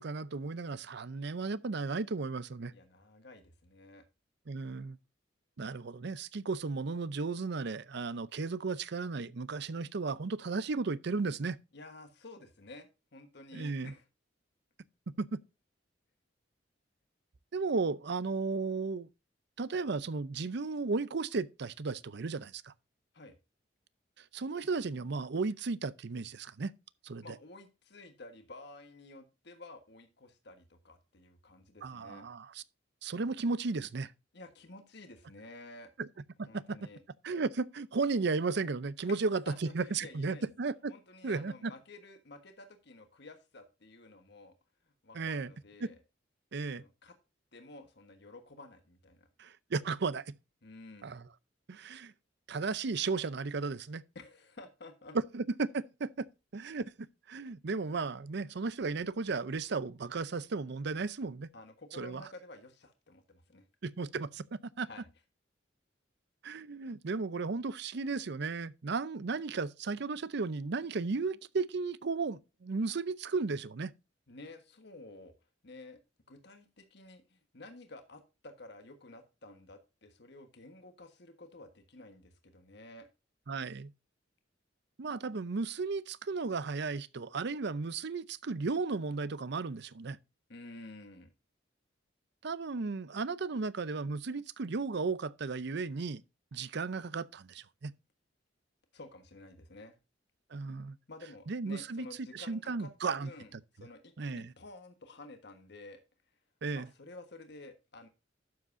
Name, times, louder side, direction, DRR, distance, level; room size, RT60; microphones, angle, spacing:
voice 1, 0.0-2.7 4.5-5.0 5.6-11.6 13.5-13.9 15.2-15.4 17.5-19.1 19.6-22.7 24.2-26.7 27.0-27.2 31.8-32.6 33.0-34.1 36.0-36.1 36.4-36.8 37.2-40.9 41.2-41.7 45.1-45.5 45.8-45.9 46.5-46.8 49.4-50.3 51.0-51.3 51.7-52.1 52.5-54.0 55.3-56.3 56.5-61.5 61.9-62.2 63.8-64.4 64.8-64.9 66.4-73.9 83.5-83.9 85.0-90.2 92.4-96.2 96.5-97.9 100.5-101.0 101.5-102.1 102.3-103.3 104.2-104.5 106.6-106.9, right 4 dB, 65° right, 0.6 m, -35 dB
voice 2, 2.7-4.0 11.7-14.0 23.1-23.3 27.2-32.3 34.3-35.9 36.5-37.0 39.1-39.2 39.5-40.5 40.9-44.5 44.9-46.0 46.6-47.2 47.5-49.3 50.6-51.2 54.1-55.2 61.5-63.6 64.9-65.0 74.3-75.3 75.6-76.0 76.3-83.1 90.5-91.3 98.9-100.0 101.1-106.0 106.7-108.1, left 2 dB, 65° left, 1.4 m, -52 dB
12.0 x 7.5 x 2.6 m
head